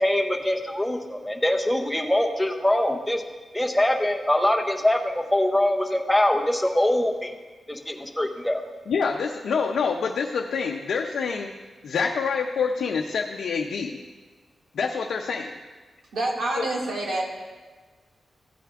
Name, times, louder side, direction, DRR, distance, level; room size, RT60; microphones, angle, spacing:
voice 1, 0.0-3.2 3.5-7.3 7.7-8.6, left 1 dB, 5° left, 3 dB, 0.7 m, -23 dB
voice 2, 8.9-11.5 11.8-14.0 14.7-15.6 16.6-16.7, left 5 dB, 85° left, 1 dB, 0.6 m, -26 dB
voice 3, 16.1-17.2, right 2 dB, 80° right, -3 dB, 2.1 m, -27 dB
15.5 x 9.0 x 2.5 m, 1.3 s
wide cardioid pair, 175°, 0 cm